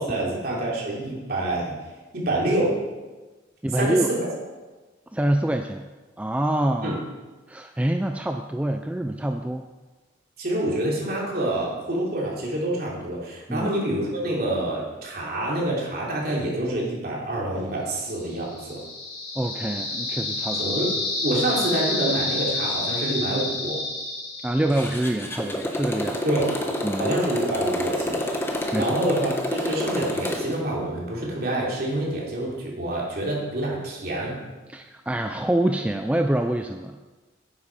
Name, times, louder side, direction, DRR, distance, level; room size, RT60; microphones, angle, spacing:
voice 1, 0.0-1.8 2.1-2.7 3.7-4.3 6.8-7.0 10.4-18.8 20.5-20.9 21.2-23.8 26.2-26.5 27.0-28.3 28.8-34.4, right 1 dB, 50° right, -4 dB, 3.2 m, -27 dB
voice 2, 3.6-4.1 5.1-5.9 6.2-7.0 7.5-9.7 13.5-13.7 19.4-20.8 24.4-26.2 26.8-27.1 28.7-29.0 34.7-37.0, right 1 dB, 5° right, 5 dB, 0.3 m, -26 dB
sound 1, 18.3-25.2, left 2 dB, 50° left, 3.9 m, -29 dB
Motorcycle, 24.7-30.6, left 1 dB, 10° left, 1.1 m, -29 dB
9.6 x 8.3 x 5.4 m, 1.2 s
head